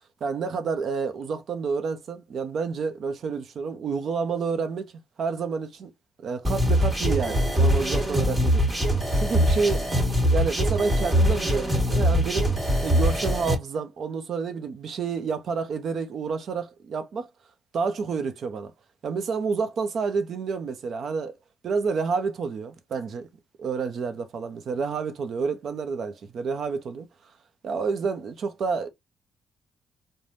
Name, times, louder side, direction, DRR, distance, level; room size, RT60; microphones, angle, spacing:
voice 1, 0.2-4.9 5.2-5.9 6.2-8.7 9.1-9.9 10.3-12.5 12.8-17.3 17.7-18.7 19.0-21.3 21.6-23.3 23.6-27.1 27.6-28.9, right 5 dB, 60° right, 0.7 m, -29 dB
sound 1, 6.4-13.5, equal, 20° right, 1.6 m, -22 dB
3.3 x 2.1 x 2.6 m
cardioid pair, 90°, 0 cm